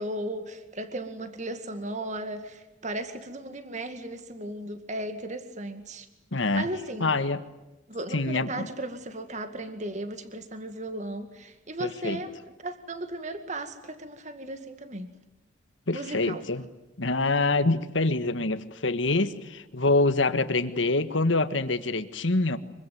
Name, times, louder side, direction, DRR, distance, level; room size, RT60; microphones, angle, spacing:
voice 1, 0.0-6.1 6.5-7.1 7.9-12.3 12.6-15.1 15.9-16.4, right 1 dB, 40° right, 8 dB, 2.1 m, -36 dB
voice 2, 6.3-6.7 7.0-7.4 8.1-8.7 11.8-12.2 15.9-16.7 17.0-22.6, left 2 dB, 80° left, 11 dB, 1.7 m, -25 dB
25.5 x 24.0 x 9.5 m, 0.97 s
head